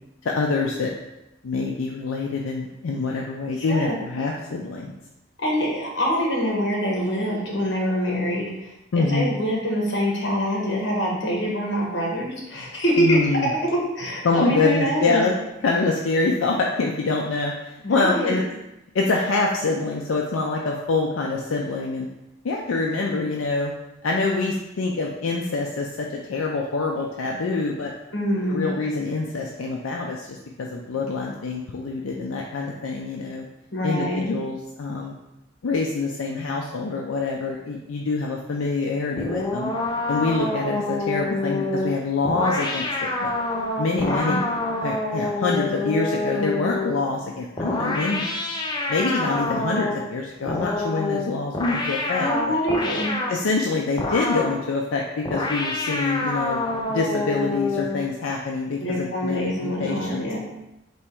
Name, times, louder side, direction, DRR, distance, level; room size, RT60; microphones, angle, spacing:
voice 1, 0.2-0.9 1.4-4.9 8.9-9.3 13.0-13.5 14.2-15.3 15.6-18.4 18.9-22.1 22.4-23.7 24.0-27.9 28.5-33.5 33.8-35.2 35.6-39.7 40.1-43.3 43.8-44.4 44.8-48.3 48.9-52.5 53.3-56.6 56.9-60.4, left 3 dB, 90° left, -1 dB, 0.5 m, -25 dB
voice 2, 3.6-3.9 5.4-8.7 8.9-13.2 13.9-15.2 17.8-18.3 28.1-28.7 33.7-34.3 43.9-44.4 51.8-53.1 58.8-60.4, equal, 60° left, -2 dB, 1.2 m, -25 dB
sound 1, 39.2-47.0 47.6-50.1 50.5-53.4 54.0-54.6 55.2-58.1, left 2 dB, 20° left, 0.5 m, -27 dB
3.4 x 3.0 x 4.4 m, 0.92 s
head